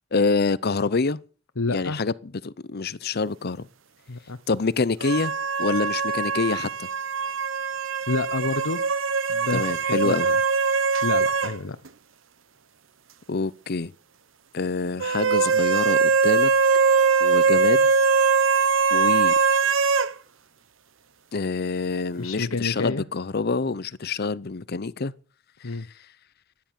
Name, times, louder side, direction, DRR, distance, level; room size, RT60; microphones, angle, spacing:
voice 1, 0.1-1.2 1.7-3.7 4.5-5.3 5.6-6.9 9.5-10.3 13.3-13.9 14.5-16.5 17.2-17.9 18.9-19.3 21.3-25.1, left 4 dB, 50° left, 0.7 m, -26 dB
voice 2, 1.6-2.0 4.1-4.4 8.1-8.8 9.3-10.4 11.0-11.8 22.1-23.0 25.6-25.9, left 3 dB, 85° left, 1.0 m, -29 dB
sound 1, 5.0-11.6 11.9-12.0 15.0-20.1, right 5 dB, 70° right, 1.1 m, -22 dB
15.0 x 10.5 x 7.5 m
head